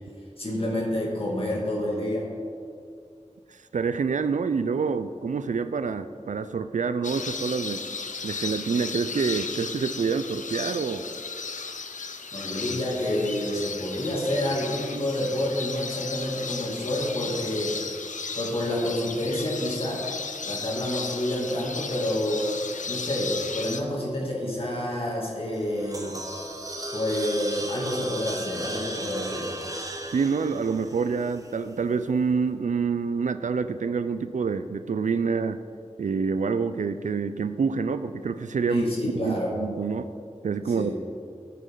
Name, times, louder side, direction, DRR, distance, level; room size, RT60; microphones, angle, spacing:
voice 1, 0.4-2.3 12.3-17.8 18.3-20.0 20.5-22.5 22.9-26.1 26.9-29.5 38.7-39.5 40.7-40.9, left 1 dB, 50° left, -4 dB, 2.5 m, -28 dB
voice 2, 3.7-7.8 8.2-11.0 30.1-35.6 36.0-40.1 40.4-40.9, right 5 dB, 80° right, 11 dB, 0.4 m, -27 dB
sound 1, 7.0-23.8, left 4 dB, 90° left, 0.6 m, -35 dB
sound 2, 25.5-31.8, right 1 dB, 30° right, 1.1 m, -36 dB
12.5 x 8.5 x 3.8 m, 2.3 s
wide cardioid pair, 50°, 12 cm